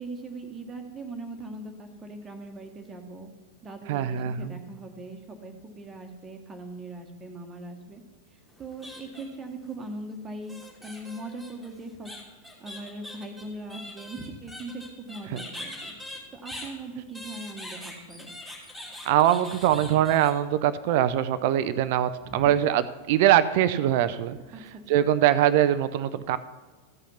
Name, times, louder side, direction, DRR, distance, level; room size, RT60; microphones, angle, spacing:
voice 1, 0.0-3.3 3.6-8.0 8.6-12.1 12.6-15.9 16.3-18.3 19.7-20.0 22.2-22.5 24.5-24.8, right 2 dB, 20° right, 4 dB, 1.4 m, -40 dB
voice 2, 3.9-4.6 19.0-24.4 24.9-26.4, right 11 dB, 50° right, 14 dB, 0.5 m, -22 dB
sound 1, 8.5-9.5 10.5-16.7 17.1-20.3, left 1 dB, 5° left, 2.9 m, -42 dB
14.5 x 5.7 x 5.6 m, 1.3 s
figure-of-eight pair, 90°, 0 cm